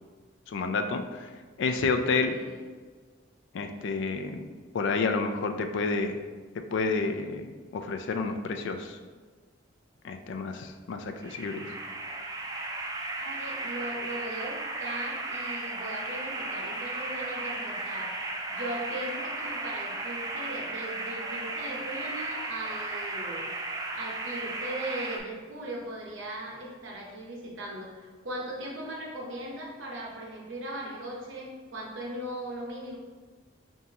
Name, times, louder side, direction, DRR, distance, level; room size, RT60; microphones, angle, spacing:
voice 1, 0.5-1.3 1.6-2.4 3.5-4.5 4.7-6.2 6.7-9.0 10.0-11.7, left 4 dB, 65° left, 6 dB, 0.3 m, -30 dB
voice 2, 2.3-2.6 13.2-18.2 18.5-23.5 23.9-33.0, right 1 dB, 75° right, -1 dB, 0.8 m, -38 dB
sound 1, 11.2-25.2, right 2 dB, 20° right, 0.4 m, -35 dB
4.0 x 3.5 x 2.8 m, 1.4 s
head